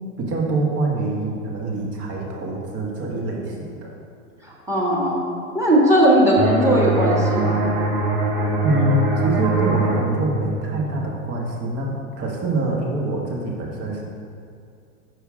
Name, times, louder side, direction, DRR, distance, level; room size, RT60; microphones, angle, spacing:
voice 1, 0.2-3.9 8.6-14.0, right 2 dB, 35° right, -1 dB, 1.4 m, -25 dB
voice 2, 4.7-5.3 5.5-7.6, equal, 5° right, -3 dB, 1.6 m, -17 dB
sound 1, 6.4-11.8, right 3 dB, 65° right, 1.4 m, -23 dB
6.4 x 4.9 x 5.0 m, 2.4 s
hypercardioid pair, 110°, 44 cm